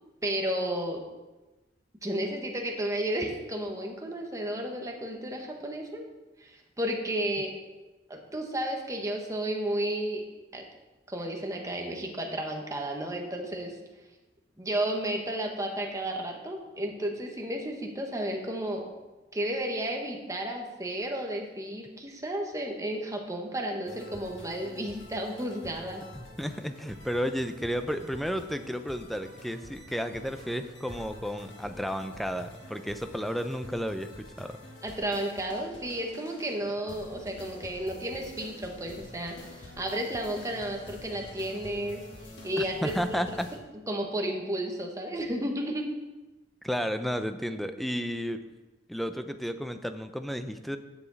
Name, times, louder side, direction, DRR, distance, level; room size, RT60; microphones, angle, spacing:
voice 1, 0.2-1.0 2.0-6.0 6.4-7.5 8.1-10.2 10.5-10.6 11.1-13.7 14.6-18.9 19.3-26.0 34.8-42.0 42.4-42.9 43.9-45.8, right 1 dB, 20° right, 1 dB, 1.2 m, -32 dB
sound 1, 23.8-43.6, left 1 dB, 85° left, 1.8 m, -48 dB
voice 2, 26.2-34.6 42.6-43.5 46.6-48.4 48.9-50.8, equal, ahead, 9 dB, 0.4 m, -32 dB
10.0 x 7.1 x 4.0 m, 1.1 s
head